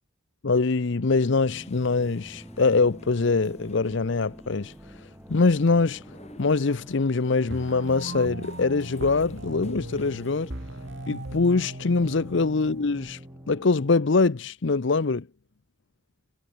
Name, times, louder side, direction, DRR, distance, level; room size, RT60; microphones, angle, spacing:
voice 1, 0.4-4.7 5.3-6.0 6.4-10.5 11.1-13.2 13.5-15.2, left 4 dB, 60° left, 0.7 m, -23 dB
sound 1, 0.9-14.0, equal, 5° right, 1.5 m, -47 dB
sound 2, 1.4-13.1, left 1 dB, 30° left, 4.3 m, -55 dB
sound 3, 7.5-13.5, right 1 dB, 60° right, 3.4 m, -39 dB
head